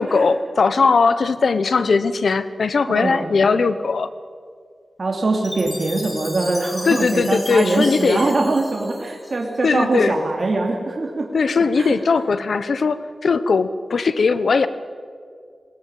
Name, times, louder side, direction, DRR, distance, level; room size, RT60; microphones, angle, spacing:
voice 1, 0.0-4.1 6.8-8.3 9.6-10.2 11.3-14.7, left 4 dB, 75° left, 14 dB, 1.0 m, -19 dB
voice 2, 2.9-3.3 5.0-11.3 11.8-12.0, right 2 dB, 55° right, 1 dB, 2.7 m, -22 dB
Chime, 5.4-9.7, left 1 dB, 25° left, 2.5 m, -35 dB
20.5 x 18.5 x 8.9 m, 2.1 s
wide cardioid pair, 70°, 0 cm